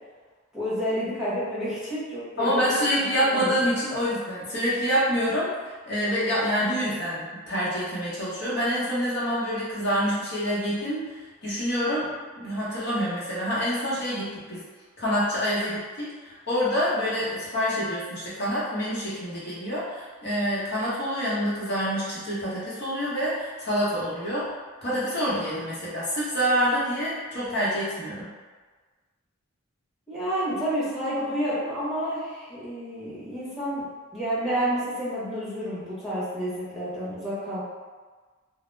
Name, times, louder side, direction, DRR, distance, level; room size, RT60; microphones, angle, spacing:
voice 1, 0.5-3.6 30.1-33.8 34.1-37.6, equal, ahead, -11 dB, 0.8 m, -30 dB
voice 2, 2.4-14.6 15.0-24.5 24.8-28.3, equal, 50° left, -9 dB, 0.9 m, -27 dB
2.1 x 2.0 x 3.1 m, 1.4 s
head